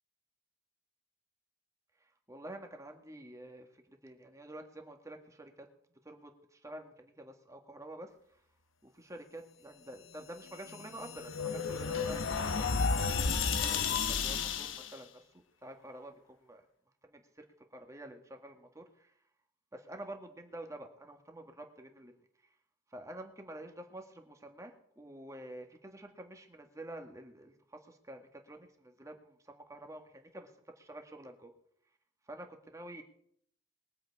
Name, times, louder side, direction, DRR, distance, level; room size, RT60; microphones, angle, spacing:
voice 1, 2.0-5.7 6.0-8.4 8.8-16.6 17.0-17.4 17.7-19.1 19.7-22.1 22.4-22.5 22.9-30.5 30.8-31.5 32.3-33.0, right 1 dB, 15° right, 4 dB, 1.7 m, -49 dB
sound 1, 10.4-15.0, left 5 dB, 80° left, 0.9 m, -32 dB
22.0 x 7.9 x 4.8 m, 0.67 s
head